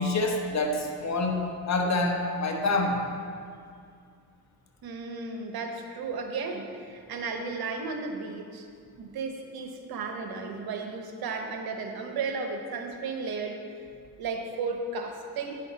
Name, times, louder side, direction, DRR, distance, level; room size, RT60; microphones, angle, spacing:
voice 1, 0.0-3.0, left 2 dB, 45° left, 2 dB, 1.2 m, -27 dB
voice 2, 4.8-8.7 9.0-13.7 14.2-15.6, right 4 dB, 75° right, 4 dB, 1.0 m, -34 dB
10.0 x 5.7 x 4.1 m, 2.2 s
cardioid pair, 80°, 37 cm